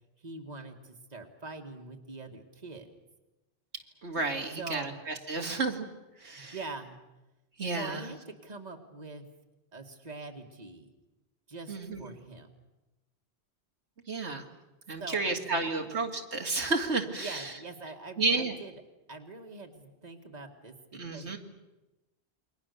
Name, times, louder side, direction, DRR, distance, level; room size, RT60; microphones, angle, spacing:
voice 1, 0.2-2.9 4.6-5.0 6.3-7.0 7.7-9.3 9.7-10.9 11.5-12.5 15.0-15.9 17.2-18.7 19.1-21.4, right 3 dB, 35° right, 3 dB, 2.2 m, -44 dB
voice 2, 4.0-5.9 6.2-6.6 7.6-8.1 11.7-12.0 14.1-14.5 14.9-17.5 18.2-18.5 20.9-21.4, right 3 dB, 80° right, 2 dB, 2.5 m, -31 dB
29.0 x 23.0 x 7.0 m, 1.0 s
omnidirectional pair, 1.1 m